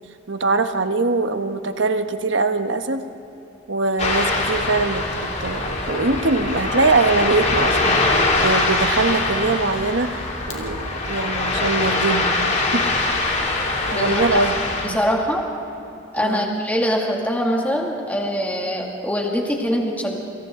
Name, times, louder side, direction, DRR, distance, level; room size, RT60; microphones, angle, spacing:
voice 1, 0.3-3.0 3.7-13.2 13.9-14.6 14.8-15.0 16.2-16.5, right 3 dB, 65° right, 8 dB, 1.2 m, -22 dB
Ocean, 4.0-14.9, left 2 dB, 35° left, 2.8 m, -22 dB
voice 2, 13.9-14.4 14.8-15.4 16.1-20.2, equal, 10° left, 0 dB, 2.3 m, -23 dB
28.5 x 27.0 x 3.8 m, 2.9 s
head